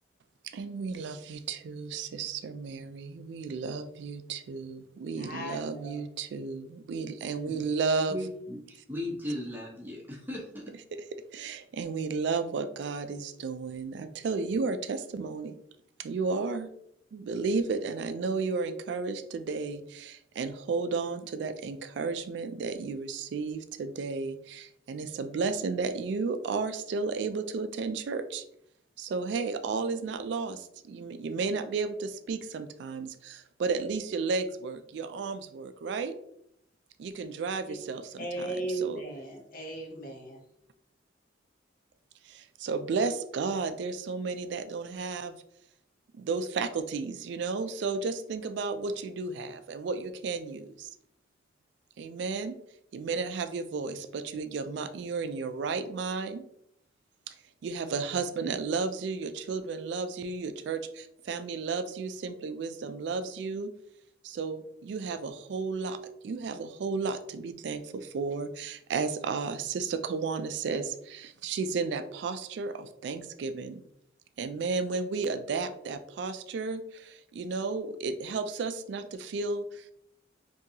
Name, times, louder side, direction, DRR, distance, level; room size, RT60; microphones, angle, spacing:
voice 1, 0.4-8.2 10.9-11.0 11.3-15.5 16.0-16.7 17.1-28.4 29.0-36.2 37.0-39.0 42.2-45.4 46.1-50.9 52.0-52.6 52.9-56.5 57.3-57.4 57.6-63.7 64.2-66.0 66.2-73.8 74.4-79.9, right 4 dB, 65° right, 0.3 m, -33 dB
voice 2, 5.2-6.0 37.7-37.8 38.2-40.4, right 2 dB, 50° left, 0.9 m, -36 dB
voice 3, 8.1-10.6, left 1 dB, 10° right, 0.8 m, -37 dB
3.7 x 2.7 x 2.7 m
head